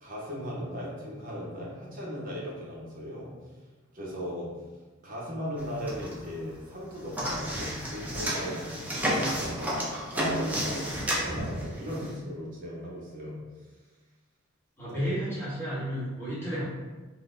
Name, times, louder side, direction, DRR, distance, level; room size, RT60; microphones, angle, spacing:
voice 1, 0.0-3.3 3.9-4.5 5.0-9.7 10.1-13.4, equal, 40° right, -5 dB, 0.8 m, -37 dB
sound 1, 5.6-6.5 6.7-12.1, equal, 10° right, 0.4 m, -31 dB
voice 2, 14.8-16.6, equal, 10° left, -9 dB, 1.1 m, -32 dB
3.7 x 2.1 x 2.5 m, 1.2 s
head